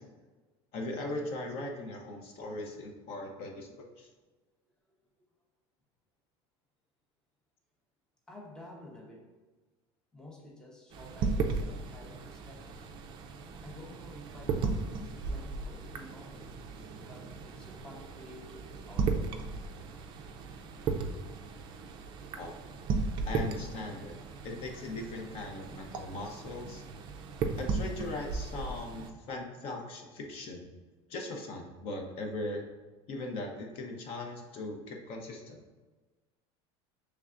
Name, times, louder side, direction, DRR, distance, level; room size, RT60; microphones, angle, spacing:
voice 1, 0.7-3.7 4.0-4.1 22.4-22.6 23.2-24.2 24.4-26.8 27.6-30.7 31.1-32.6 33.1-35.6, left 2 dB, 45° left, 2 dB, 0.7 m, -39 dB
voice 2, 4.9-5.3 8.3-9.5 10.1-12.9 13.6-16.5 17.0-19.4 29.1-29.2, left 1 dB, 5° left, -1 dB, 0.6 m, -51 dB
sound 1, 10.9-29.1, right 4 dB, 35° right, 0.4 m, -36 dB
5.3 x 3.3 x 2.4 m, 1.3 s
cardioid pair, 150°, 14 cm